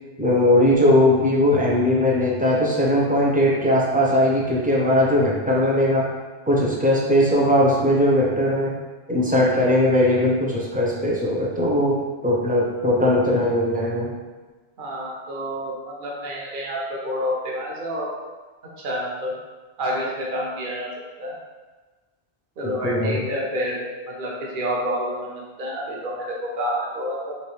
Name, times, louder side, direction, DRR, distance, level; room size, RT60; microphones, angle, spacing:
voice 1, 0.2-6.1 6.5-8.7 9.1-12.0 12.2-14.1 22.6-23.2, left 1 dB, 15° right, -4 dB, 0.3 m, -19 dB
voice 2, 14.8-18.1 18.8-19.3 19.8-20.9 21.2-21.3 22.6-23.8 24.1-27.3, equal, 55° right, -3 dB, 0.9 m, -28 dB
3.1 x 3.0 x 3.1 m, 1.3 s
omnidirectional pair, 1.1 m